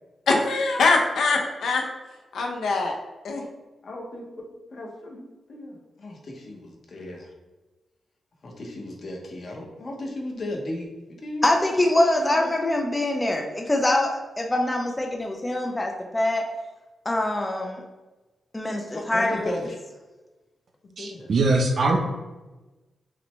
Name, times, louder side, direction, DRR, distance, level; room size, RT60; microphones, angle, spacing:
voice 1, 0.3-1.8 2.3-2.9 3.2-3.4, left 3 dB, 85° left, 1 dB, 0.7 m, -22 dB
voice 2, 3.8-4.2 4.7-7.3 8.4-10.9 11.2-11.7 12.2-12.5 18.9-19.6 20.8-21.3, left 1 dB, 45° left, 0 dB, 0.8 m, -35 dB
voice 3, 11.4-16.4 17.1-17.8 18.5-19.5, left 1 dB, 15° left, 2 dB, 0.4 m, -24 dB
voice 4, 21.0-22.0, right 2 dB, 55° right, 3 dB, 0.6 m, -22 dB
5.8 x 2.1 x 3.0 m, 1.1 s
wide cardioid pair, 145°, 0 cm